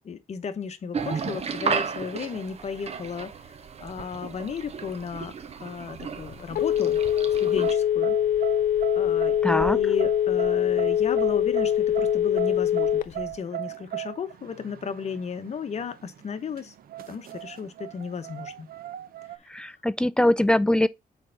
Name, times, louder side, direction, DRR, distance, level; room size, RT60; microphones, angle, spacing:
voice 1, 0.0-3.3 3.8-5.3 5.6-7.0 7.4-8.2 9.0-16.7 17.1-18.7, left 6 dB, 45° left, 0.9 m, -34 dB
sound 1, 0.9-7.7, right 6 dB, 45° right, 0.8 m, -34 dB
Telephone, 6.0-13.3, left 10 dB, 65° left, 0.5 m, -23 dB
sound 2, 7.4-19.4, right 14 dB, 75° right, 0.6 m, -37 dB
voice 2, 9.4-9.8 19.5-20.9, left 1 dB, 5° left, 0.3 m, -22 dB
6.5 x 4.5 x 3.9 m
wide cardioid pair, 130°, 15 cm